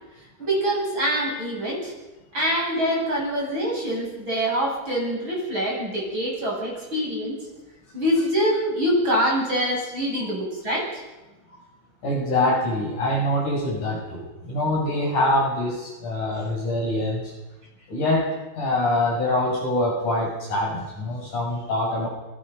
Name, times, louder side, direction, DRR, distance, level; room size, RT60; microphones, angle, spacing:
voice 1, 0.4-1.9 2.3-7.4 7.9-10.9, equal, 25° right, -3 dB, 8.7 m, -25 dB
voice 2, 12.0-17.3 17.9-18.3 18.6-22.1, left 1 dB, 40° left, -2 dB, 7.7 m, -24 dB
29.5 x 23.0 x 5.6 m, 1.1 s
omnidirectional pair, 5.3 m